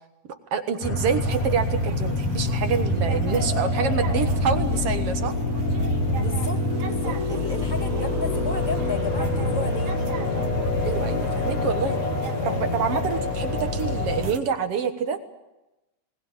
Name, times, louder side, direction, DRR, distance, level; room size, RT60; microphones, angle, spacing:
voice 1, 0.3-5.4 10.8-12.0 12.4-15.2, right 6 dB, 60° right, 8 dB, 1.9 m, -27 dB
sound 1, 0.8-14.3, left 2 dB, 75° left, 3.7 m, -25 dB
sound 2, 1.3-14.4, right 6 dB, 80° right, 2.9 m, -38 dB
voice 2, 6.1-9.9, left 1 dB, 25° right, 5 dB, 1.1 m, -33 dB
21.0 x 19.5 x 8.9 m, 0.99 s
omnidirectional pair, 3.5 m